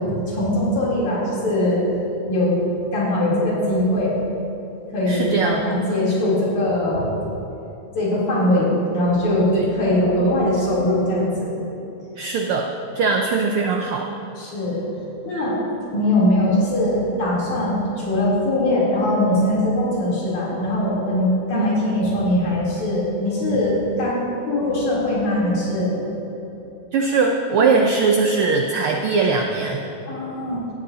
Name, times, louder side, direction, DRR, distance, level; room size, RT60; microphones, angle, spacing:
voice 1, 0.0-1.8 2.3-2.6 2.9-4.1 4.9-7.1 8.0-11.5 14.4-14.8 15.2-15.6 15.9-25.9 30.1-30.6, left 1 dB, 75° left, -7 dB, 4.9 m, -21 dB
voice 2, 5.1-5.6 9.5-9.7 12.2-12.7 12.9-14.1 21.5-21.7 26.9-29.9, right 4 dB, 85° right, 2 dB, 1.2 m, -20 dB
17.5 x 13.5 x 2.8 m, 3.0 s
omnidirectional pair, 3.4 m